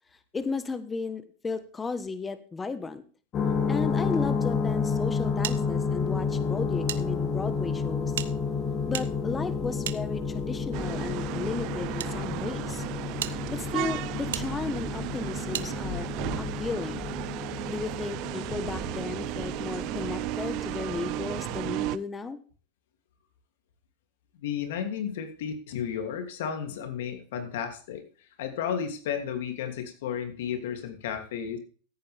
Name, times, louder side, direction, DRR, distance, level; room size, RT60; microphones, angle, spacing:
voice 1, 0.3-3.0 3.7-8.1 8.9-12.8 13.5-16.1 16.4-17.1 17.7-22.4, left 4 dB, 15° left, 12 dB, 1.2 m, -34 dB
sound 1, 3.3-21.7, left 5 dB, 35° left, 2.5 m, -31 dB
sound 2, 5.4-7.0 7.3-7.4 8.1-10.6 11.4-12.1 12.7-12.8 13.2-13.4 14.3-14.5 15.5-15.7, right 11 dB, 85° right, 0.9 m, -37 dB
sound 3, 10.7-22.0, right 17 dB, 55° right, 0.7 m, -34 dB
voice 2, 24.4-28.0 28.4-31.6, left 8 dB, 75° left, 7 dB, 2.8 m, -33 dB
15.5 x 9.0 x 3.5 m, 0.40 s
supercardioid pair, 120°, 0 cm